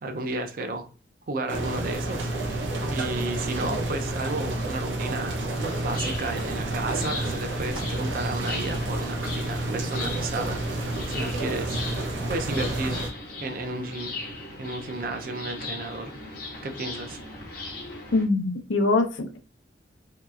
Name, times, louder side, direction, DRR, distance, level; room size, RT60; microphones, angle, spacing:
voice 1, 0.0-0.9 1.3-2.3 2.9-5.4 5.8-11.8 12.3-13.0 13.4-14.1 14.6-17.2, right 2 dB, 50° right, 0.4 m, -33 dB
sound 1, 1.5-13.1, right 2 dB, 90° right, 0.6 m, -30 dB
sound 2, 5.5-18.3, left 2 dB, 50° left, 0.7 m, -38 dB
voice 2, 18.1-19.4, left 3 dB, 90° left, 0.6 m, -23 dB
3.0 x 2.9 x 2.3 m
head